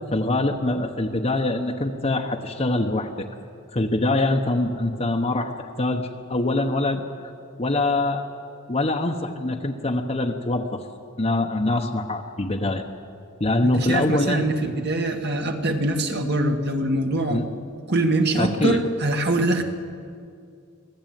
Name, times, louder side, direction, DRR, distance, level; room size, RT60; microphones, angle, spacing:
voice 1, 0.1-3.3 3.7-5.5 5.8-7.3 7.6-8.3 8.7-10.8 11.2-12.8 13.4-14.5 17.3-17.4 18.3-18.8, left 2 dB, 30° left, 2 dB, 1.1 m, -24 dB
voice 2, 13.6-17.5 17.9-19.6, right 1 dB, 50° right, 4 dB, 2.0 m, -23 dB
25.0 x 17.0 x 9.2 m, 2.4 s
head